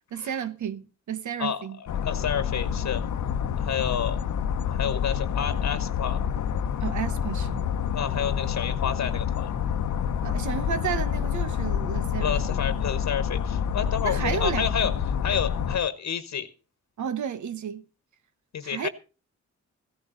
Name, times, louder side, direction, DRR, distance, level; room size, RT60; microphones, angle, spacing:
voice 1, 0.1-1.8 6.8-7.7 10.2-12.6 14.0-14.7 17.0-17.8 18.6-18.9, right 8 dB, 85° right, 1.2 m, -32 dB
voice 2, 1.4-3.0 3.6-4.2 4.7-6.2 7.9-9.5 12.2-14.9 15.2-16.5 18.5-18.9, left 8 dB, 70° left, 1.2 m, -29 dB
sound 1, 1.9-15.8, left 8 dB, 90° left, 0.9 m, -28 dB
15.5 x 15.0 x 3.9 m
wide cardioid pair, 105°, 29 cm